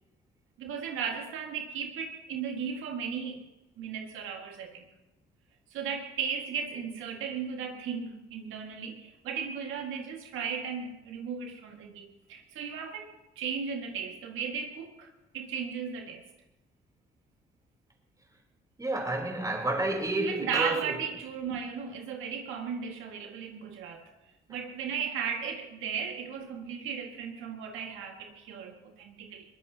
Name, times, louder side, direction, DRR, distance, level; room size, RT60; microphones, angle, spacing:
voice 1, 0.6-3.4 3.8-4.9 5.7-16.2 20.2-24.1 24.5-29.4, right 6 dB, 90° right, 1.9 m, -36 dB
voice 2, 18.8-21.0, right 2 dB, 15° right, 3.5 m, -30 dB
22.0 x 18.5 x 2.9 m
cardioid pair, 90°, 20 cm